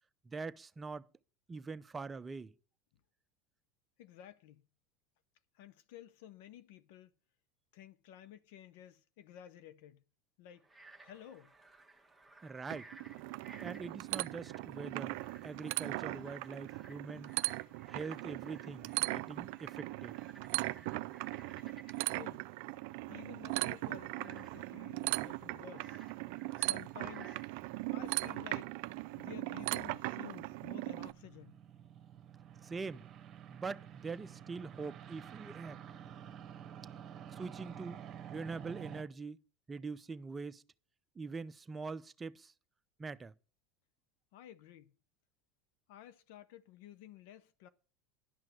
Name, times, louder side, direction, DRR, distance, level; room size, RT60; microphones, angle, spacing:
voice 1, 0.3-1.1 1.5-2.5 12.4-12.9 13.6-15.2 15.4-17.3 17.9-20.1 32.6-33.0 33.5-35.8 37.4-38.0 38.3-39.4 39.7-40.6 41.2-42.5 43.0-43.3, right 4 dB, 20° right, 0.6 m, -43 dB
voice 2, 4.0-4.6 5.5-7.1 7.7-10.0 10.4-10.6 11.0-11.5 22.1-22.5 23.1-26.0 26.6-27.4 27.9-28.7 29.2-31.6 44.3-44.9 45.9-47.7, left 11 dB, 70° left, 0.7 m, -53 dB
Frog, 10.6-29.3, right 2 dB, ahead, 1.4 m, -60 dB
sound 1, 12.7-31.1, right 21 dB, 70° right, 0.4 m, -39 dB
sound 2, 24.7-39.0, right 9 dB, 40° right, 1.2 m, -52 dB
11.5 x 5.8 x 7.7 m
supercardioid pair, 105°, 0 cm